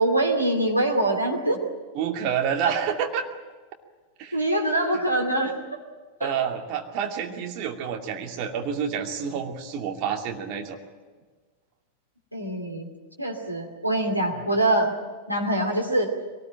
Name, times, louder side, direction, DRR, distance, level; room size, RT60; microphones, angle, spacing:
voice 1, 0.0-1.6 4.3-5.5 6.2-6.3 12.3-12.9 13.2-14.9 15.3-16.1, right 1 dB, 90° right, 0 dB, 2.7 m, -24 dB
voice 2, 1.9-3.3 4.2-4.4 6.2-10.8 14.3-14.4, right 8 dB, 40° right, 2 dB, 2.6 m, -28 dB
23.5 x 19.0 x 9.0 m, 1.4 s
figure-of-eight pair, 90°, 0 cm